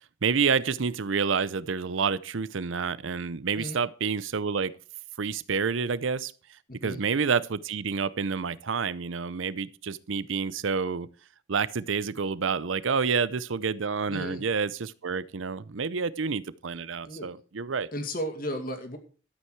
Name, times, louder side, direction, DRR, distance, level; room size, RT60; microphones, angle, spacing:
voice 1, 0.2-4.7 5.2-6.3 6.8-11.1 11.5-17.9, right 5 dB, 80° right, 0.6 m, -28 dB
voice 2, 6.7-7.0 14.1-14.4 17.0-17.3 17.9-19.0, equal, 45° left, 2.3 m, -34 dB
13.0 x 8.6 x 4.6 m
head